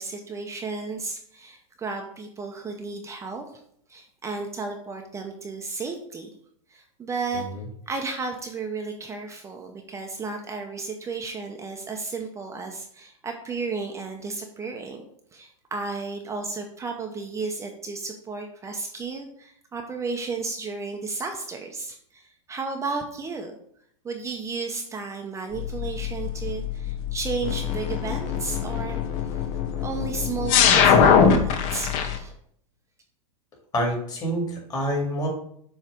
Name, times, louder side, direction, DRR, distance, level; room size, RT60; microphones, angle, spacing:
voice 1, 0.0-3.5 3.9-6.3 6.7-7.4 7.9-15.0 15.3-23.6 24.0-29.0 29.8-32.3, right 4 dB, 15° right, 3 dB, 0.7 m, -33 dB
sound 1, 25.5-32.2, left 7 dB, 45° left, 0.9 m, -22 dB
voice 2, 33.7-35.3, equal, 20° left, -1 dB, 2.3 m, -27 dB
7.4 x 3.2 x 5.0 m, 0.66 s
hypercardioid pair, 125°, 17 cm